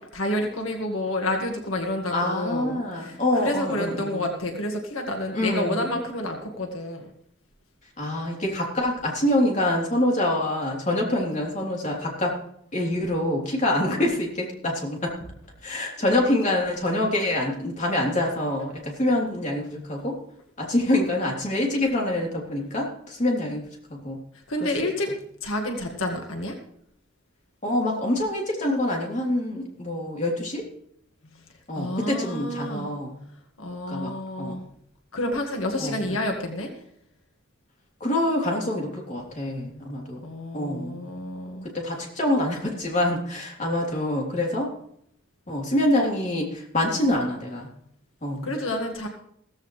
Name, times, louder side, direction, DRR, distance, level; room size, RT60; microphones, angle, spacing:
voice 1, 0.1-7.1 24.5-25.1 25.4-26.6 31.7-32.9 33.6-34.6 35.1-36.7 40.2-41.7 48.4-49.1, left 1 dB, 90° left, 3 dB, 1.9 m, -29 dB
voice 2, 2.1-4.3 5.3-5.9 8.0-12.3 12.7-15.1 15.6-20.2 20.6-24.2 24.6-24.7 27.6-30.6 31.7-33.1 33.9-34.1 34.4-34.6 35.8-36.2 38.0-40.2 40.5-41.0 41.8-44.7 45.5-47.7 48.2-48.5, left 1 dB, 35° left, -2 dB, 3.5 m, -26 dB
15.5 x 15.0 x 3.3 m, 0.69 s
head